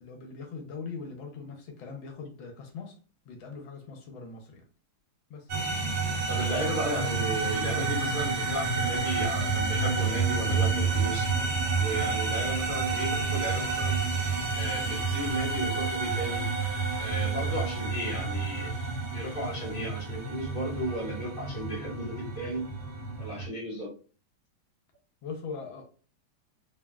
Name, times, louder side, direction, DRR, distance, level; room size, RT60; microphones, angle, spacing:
voice 1, 0.0-2.9 3.3-4.6 5.3-5.5 25.2-25.8, left 4 dB, 80° left, 3 dB, 1.3 m, -41 dB
sound 1, 5.5-23.5, right 4 dB, 80° right, 1.4 m, -29 dB
voice 2, 6.3-11.3 11.8-14.0 14.5-16.4 17.0-18.7 19.1-22.6 23.2-23.9, equal, 25° left, -5 dB, 0.9 m, -34 dB
3.6 x 2.0 x 2.2 m, 0.38 s
omnidirectional pair, 2.2 m